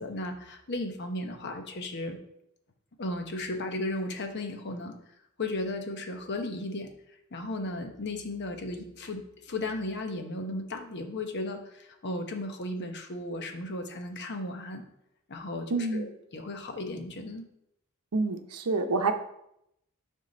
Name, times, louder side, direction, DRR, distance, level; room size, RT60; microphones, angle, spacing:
voice 1, 0.0-2.2 3.0-4.9 5.4-6.9 7.3-14.8 15.3-17.5, left 2 dB, 50° left, 5 dB, 0.9 m, -35 dB
voice 2, 15.7-16.1 18.1-19.1, right 3 dB, 90° right, 7 dB, 0.7 m, -27 dB
6.6 x 3.7 x 5.3 m, 0.77 s
head